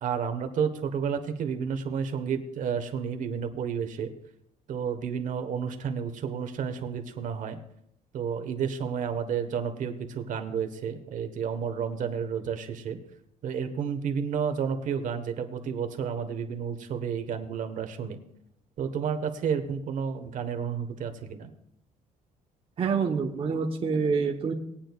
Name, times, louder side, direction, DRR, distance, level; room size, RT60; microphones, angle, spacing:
voice 1, 0.0-4.1 4.7-7.6 8.1-13.0 13.4-18.2 18.8-21.5, right 7 dB, 60° right, 7 dB, 1.3 m, -31 dB
voice 2, 22.8-24.5, right 5 dB, 40° right, 0 dB, 1.0 m, -26 dB
20.5 x 8.7 x 2.4 m, 0.77 s
cardioid pair, 125°, 15 cm